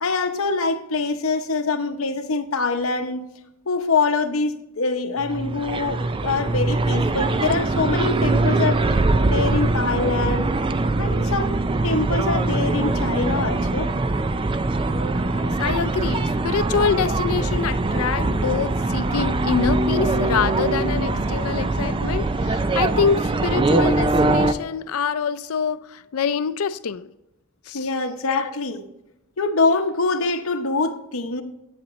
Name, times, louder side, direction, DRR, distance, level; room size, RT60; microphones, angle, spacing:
voice 1, 0.0-3.2 3.7-8.8 9.2-10.5 11.0-11.6 11.8-13.9 27.7-28.9 29.4-31.4, left 3 dB, 75° left, 0.9 m, -24 dB
sound 1, 5.2-24.5, right 2 dB, 25° right, 0.4 m, -22 dB
voice 2, 15.3-27.1 27.7-27.9 28.3-28.5, left 6 dB, 90° left, 0.5 m, -25 dB
10.5 x 8.6 x 3.1 m
head